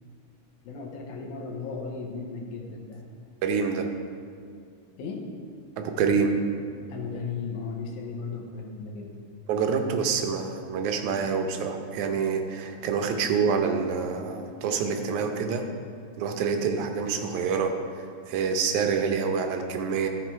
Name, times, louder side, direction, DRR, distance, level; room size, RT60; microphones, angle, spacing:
voice 1, 0.6-3.0 5.0-5.3 6.9-9.2, left 4 dB, 85° left, 1 dB, 2.4 m, -36 dB
voice 2, 3.4-3.9 5.8-6.3 9.5-15.7 16.2-20.1, right 5 dB, 85° right, 5 dB, 2.2 m, -27 dB
12.5 x 5.8 x 4.5 m, 2.3 s
omnidirectional pair, 3.3 m